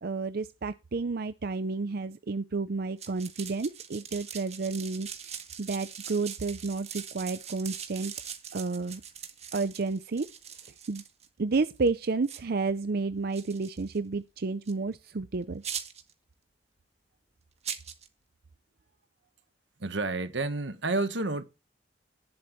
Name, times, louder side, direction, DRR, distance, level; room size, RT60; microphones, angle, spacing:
voice 1, 0.0-5.1 5.6-8.1 8.5-9.0 9.5-10.3 10.9-11.0 11.4-15.6, right 3 dB, 60° right, 0.6 m, -31 dB
sound 1, 3.0-11.3 11.8-11.9 12.2-12.4 13.3-14.0 14.7-14.8 15.6-16.1 17.6-18.1, right 8 dB, 40° right, 1.7 m, -41 dB
voice 2, 19.8-21.4, right 2 dB, 85° right, 1.4 m, -30 dB
18.5 x 7.9 x 3.2 m
head